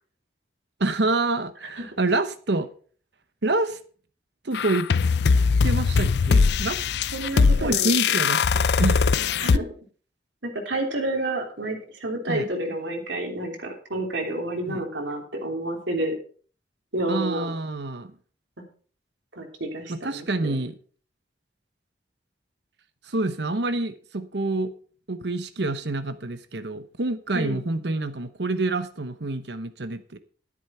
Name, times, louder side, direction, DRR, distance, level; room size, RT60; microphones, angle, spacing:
voice 1, 0.8-2.7 3.4-3.8 4.4-4.9 5.6-6.9 7.4-9.0 12.3-12.5 14.7-14.8 17.1-18.1 19.9-20.8 23.0-24.7 25.1-30.2, right 2 dB, 70° right, 1.0 m, -27 dB
sound 1, 4.5-9.6, left 5 dB, 65° left, 0.4 m, -21 dB
voice 2, 7.1-7.9 9.4-9.7 10.4-16.1 16.9-17.5 19.3-20.6 27.3-27.6, right 1 dB, 90° right, 3.2 m, -29 dB
11.5 x 10.0 x 4.4 m
head